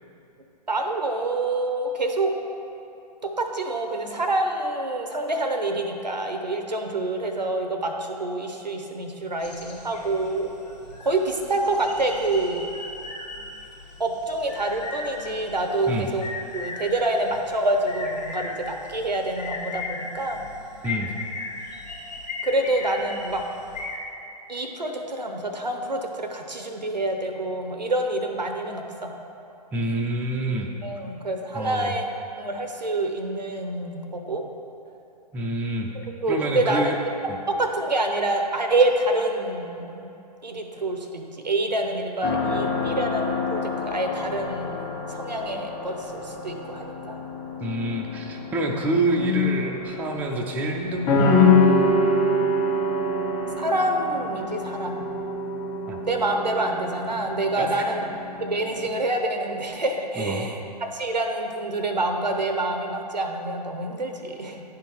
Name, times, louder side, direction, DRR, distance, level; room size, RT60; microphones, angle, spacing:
voice 1, 0.7-2.3 3.4-10.5 11.0-12.7 14.0-16.2 16.5-20.4 22.4-23.4 24.5-29.1 30.8-32.0 32.4-34.4 36.2-36.9 37.5-40.1 40.4-44.7 45.1-47.2 53.6-55.0 56.0-58.0 58.4-64.6, right 2 dB, 90° right, 4 dB, 0.8 m, -27 dB
sound 1, 9.4-24.0, left 3 dB, 75° left, 1.2 m, -37 dB
voice 2, 29.7-30.7 31.5-32.0 35.3-35.9 36.3-37.0 37.3-37.4 47.6-51.5 55.9-56.0 57.6-57.9 60.2-60.5, right 1 dB, 5° right, 0 dB, 0.4 m, -27 dB
sound 2, 42.2-58.9, left 3 dB, 35° left, 1.3 m, -26 dB
9.8 x 3.8 x 4.5 m, 2.8 s
figure-of-eight pair, 115°, 21 cm